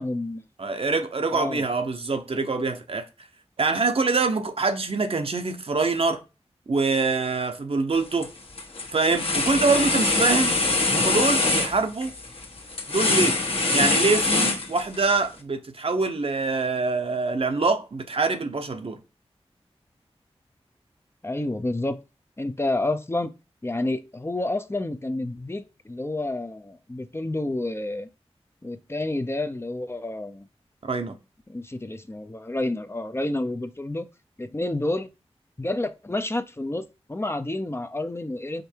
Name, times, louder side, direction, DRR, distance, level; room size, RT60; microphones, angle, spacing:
voice 1, 0.0-0.4 1.3-1.6 21.2-22.0 22.4-23.3 23.6-28.1 28.6-30.5 31.5-34.1 34.4-35.1 35.6-38.6, left 2 dB, 25° left, 0.6 m, -29 dB
voice 2, 0.6-3.1 3.6-6.2 6.7-8.3 8.9-10.6 10.9-12.1 12.9-13.4 13.7-19.0 30.8-31.2, right 3 dB, 60° right, 0.9 m, -24 dB
sound 1, 7.9-8.3 8.6-15.1, left 3 dB, 60° left, 1.3 m, -24 dB
5.1 x 4.6 x 4.5 m
wide cardioid pair, 75°, 11 cm